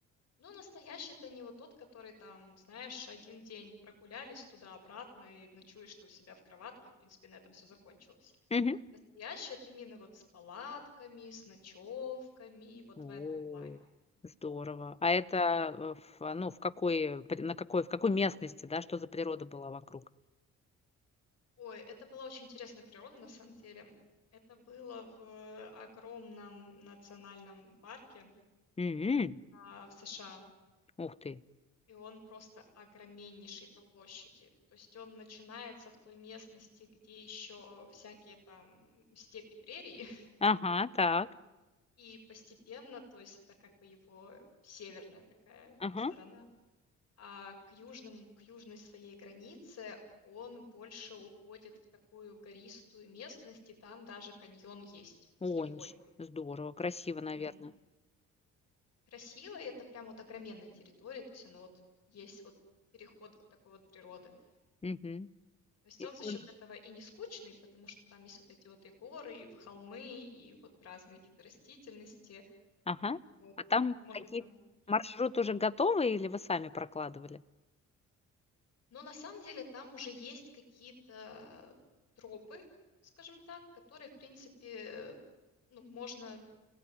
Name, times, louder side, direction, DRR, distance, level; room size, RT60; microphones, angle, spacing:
voice 1, 0.4-8.3 9.2-13.7 15.3-15.5 21.6-23.9 24.5-28.3 29.5-30.4 31.9-40.3 42.0-45.8 46.1-46.5 47.2-51.7 52.1-55.2 55.4-55.9 57.3-57.6 59.1-61.7 62.1-62.5 63.0-63.3 63.6-64.3 65.8-72.4 73.4-73.5 74.0-74.6 74.9-75.0 78.9-81.8 82.2-82.6 83.2-83.6 83.9-85.1 85.7-86.4, left 5 dB, 55° left, 7.7 m, -49 dB
voice 2, 13.0-13.8 14.4-20.0 28.8-29.4 31.0-31.4 40.4-41.3 45.8-46.1 55.4-55.9 56.2-57.7 64.8-65.3 66.2-66.4 72.9-73.2 73.7-74.4 74.9-77.4, left 4 dB, 20° left, 0.9 m, -33 dB
30.0 x 19.5 x 9.8 m
cardioid pair, 90°, 30 cm